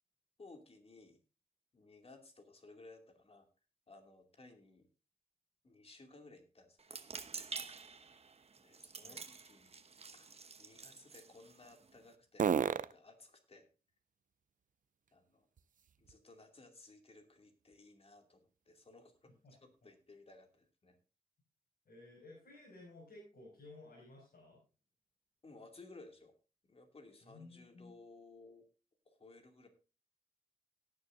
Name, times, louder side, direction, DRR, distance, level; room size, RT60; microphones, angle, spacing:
voice 1, 0.4-1.2 1.7-3.5 3.9-4.9 5.6-7.0 8.6-9.8 10.1-12.5 12.8-13.7 15.1-15.5 16.0-19.3 19.6-21.0 25.4-26.3 26.7-28.7 29.1-29.7, left 3 dB, 40° left, 5 dB, 2.6 m, -58 dB
sound 1, 6.8-12.1, right 5 dB, 45° right, 1.0 m, -49 dB
sound 2, 7.4-16.5 16.9-20.7, right 7 dB, 60° right, 0.5 m, -44 dB
voice 2, 21.8-24.6 27.2-27.9, left 2 dB, 75° left, -4 dB, 6.3 m, -55 dB
18.0 x 9.8 x 2.6 m, 0.33 s
wide cardioid pair, 120°, 15 cm